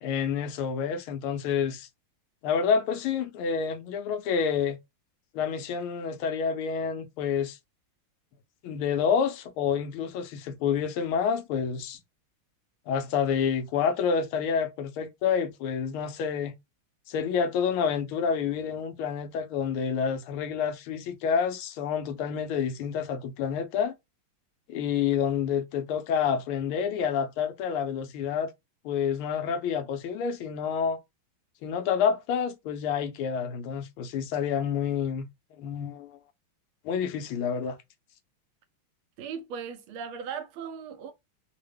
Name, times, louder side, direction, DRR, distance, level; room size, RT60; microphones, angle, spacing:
voice 1, 0.0-1.9 2.4-4.8 5.3-7.6 8.6-12.0 12.9-16.6 17.1-23.9 24.7-28.5 28.8-31.0 31.6-35.3 35.6-36.2 36.8-37.8, left 7 dB, 80° left, 1.4 m, -28 dB
voice 2, 39.2-41.1, right 7 dB, 80° right, 1.5 m, -37 dB
3.7 x 2.1 x 3.2 m
omnidirectional pair, 2.4 m